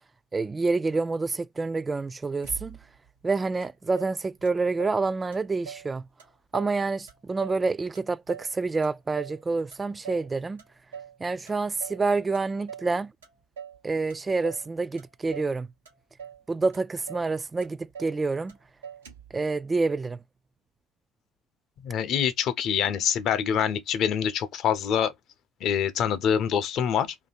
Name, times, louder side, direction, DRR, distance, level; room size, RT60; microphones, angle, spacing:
voice 1, 0.3-2.8 3.2-6.1 6.5-10.6 11.2-13.1 13.8-15.7 16.5-18.5 19.3-20.2, right 3 dB, 25° right, 0.3 m, -28 dB
Motor vehicle (road), 2.4-3.1 3.6-3.7 4.0-5.0 5.3-5.9 6.2-6.8 7.1-8.5 8.8-9.4 9.7-10.3 10.6-11.2 11.5-12.1 12.3-12.9 13.2-13.8 14.1-14.7 15.0-15.6 15.9-16.4 16.7-16.8 17.1-17.3 17.6-18.2 18.5-18.6 18.8-19.4, right 7 dB, 85° right, 0.9 m, -43 dB
voice 2, 21.8-25.1 25.6-27.1, left 8 dB, 55° left, 0.6 m, -25 dB
2.8 x 2.6 x 4.1 m
figure-of-eight pair, 55°, 0 cm